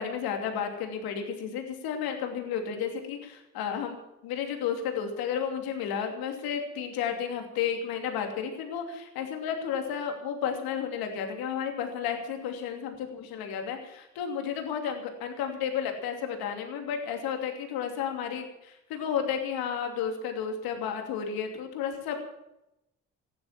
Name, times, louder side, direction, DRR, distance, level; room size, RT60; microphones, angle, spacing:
voice 1, 0.0-4.0 4.2-22.2, left 7 dB, 80° left, 4 dB, 2.9 m, -32 dB
15.0 x 11.0 x 7.5 m, 0.88 s
hypercardioid pair, 45°, 36 cm